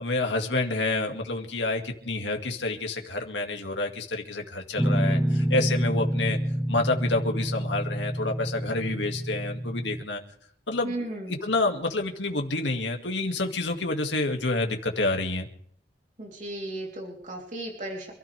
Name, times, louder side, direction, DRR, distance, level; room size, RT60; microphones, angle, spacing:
voice 1, 0.0-6.4 6.7-10.2 10.7-15.5, left 2 dB, 85° left, 3 dB, 2.2 m, -28 dB
Guitar, 4.8-10.0, equal, 5° right, 0.7 m, -27 dB
voice 2, 10.8-11.4 16.2-18.1, right 1 dB, 40° right, 0 dB, 3.6 m, -35 dB
27.0 x 13.5 x 3.5 m, 0.65 s
head